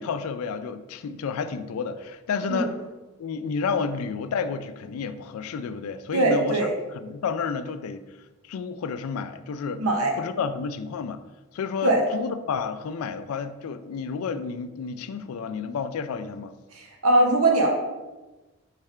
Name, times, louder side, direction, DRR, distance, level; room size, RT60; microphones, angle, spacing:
voice 1, 0.0-2.7 3.2-6.6 6.9-8.0 8.5-9.9 10.2-11.2 11.5-16.5, left 5 dB, 85° left, 11 dB, 0.3 m, -30 dB
voice 2, 6.1-6.7 9.8-10.1 11.8-12.0 16.8-17.7, right 2 dB, 90° right, 2 dB, 0.8 m, -21 dB
3.6 x 3.2 x 4.3 m, 1.1 s
head